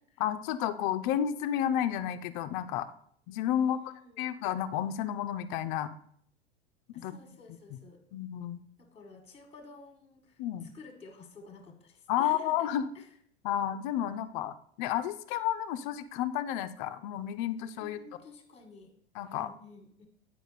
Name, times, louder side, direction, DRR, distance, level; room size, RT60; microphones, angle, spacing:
voice 1, 0.2-2.9 3.3-3.8 4.2-5.9 7.0-7.1 8.1-8.6 10.4-10.7 12.1-12.9 13.4-18.0 19.2-19.5, left 10 dB, 50° left, 9 dB, 0.6 m, -31 dB
voice 2, 3.6-4.3 6.9-8.0 8.8-12.7 12.9-13.1 17.8-18.9 19.3-20.1, left 4 dB, 20° left, 5 dB, 1.4 m, -52 dB
9.2 x 4.6 x 4.0 m, 0.63 s
hypercardioid pair, 85°, 31 cm